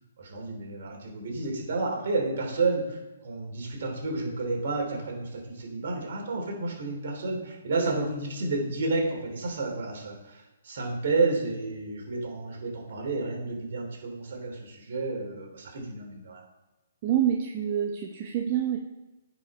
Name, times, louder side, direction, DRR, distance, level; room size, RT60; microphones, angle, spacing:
voice 1, 0.2-16.4, right 3 dB, 60° right, 0 dB, 3.2 m, -31 dB
voice 2, 17.0-18.8, right 10 dB, 40° right, 3 dB, 0.8 m, -27 dB
9.8 x 5.5 x 4.3 m, 1.1 s
hypercardioid pair, 135°, 0 cm